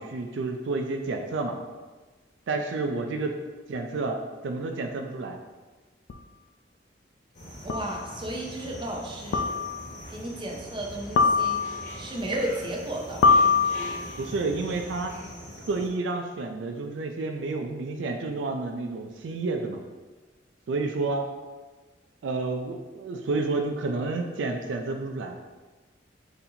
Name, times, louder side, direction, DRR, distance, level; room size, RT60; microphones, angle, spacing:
voice 1, 0.0-1.6 2.5-3.3 3.7-5.4 14.2-15.1 15.7-19.8 20.7-21.2 22.2-25.4, right 3 dB, 75° right, 4 dB, 0.4 m, -30 dB
sound 1, 6.1-6.2 7.7-8.1 9.3-9.9 11.2-11.9 13.2-14.2, left 4 dB, 65° left, 0.3 m, -23 dB
sound 2, 7.3-15.9, equal, 40° left, 1.3 m, -42 dB
voice 2, 7.6-9.5 10.1-11.6 12.0-13.3, right 1 dB, 25° right, 0 dB, 0.6 m, -33 dB
4.1 x 4.1 x 2.7 m, 1.3 s
head